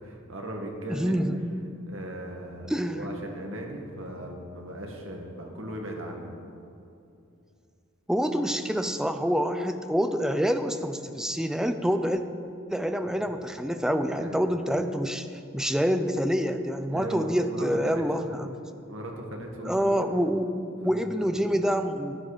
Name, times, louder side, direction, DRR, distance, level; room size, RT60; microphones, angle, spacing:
voice 1, 0.0-1.2 1.9-6.3 13.1-13.3 14.1-14.4 16.9-18.3 18.9-20.1 20.8-21.4, right 1 dB, 70° right, 1 dB, 1.9 m, -38 dB
voice 2, 0.9-1.4 2.7-3.1 8.1-12.2 12.7-15.3 15.5-18.6 19.7-22.2, equal, 5° right, 8 dB, 0.5 m, -27 dB
14.0 x 9.7 x 5.0 m, 2.6 s
head